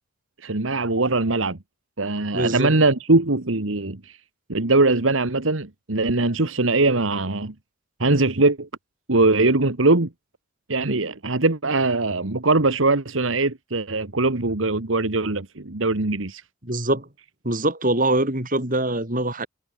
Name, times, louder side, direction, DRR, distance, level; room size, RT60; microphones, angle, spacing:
voice 1, 0.4-1.6 2.0-4.2 4.5-7.5 8.0-8.7 9.1-10.1 10.7-16.4, right 2 dB, 80° right, 1.7 m, -21 dB
voice 2, 2.3-2.7 16.6-17.1 17.4-19.5, right 1 dB, 45° right, 7.5 m, -23 dB
head